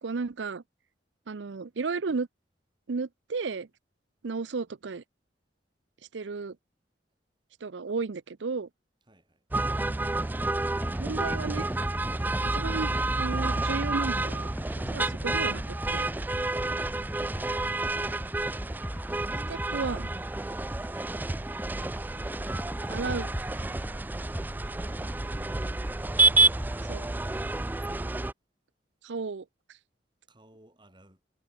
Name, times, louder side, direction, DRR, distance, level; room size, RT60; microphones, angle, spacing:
voice 1, 0.0-0.6 1.3-2.3 2.9-3.7 4.2-5.0 6.1-6.6 7.6-8.7 11.0-11.7 12.4-12.9 13.2-14.5 14.9-15.6 15.9-16.1 19.5-20.1 22.9-23.3 26.9-27.1 29.0-29.4, right 4 dB, 85° right, 0.6 m, -33 dB
voice 2, 9.1-9.4 16.5-16.9 24.8-25.4 26.5-27.2 30.3-31.2, right 1 dB, 25° right, 7.0 m, -57 dB
sound 1, 9.5-28.3, right 2 dB, 10° right, 0.3 m, -29 dB
sound 2, 10.8-26.8, equal, 5° left, 1.3 m, -41 dB
head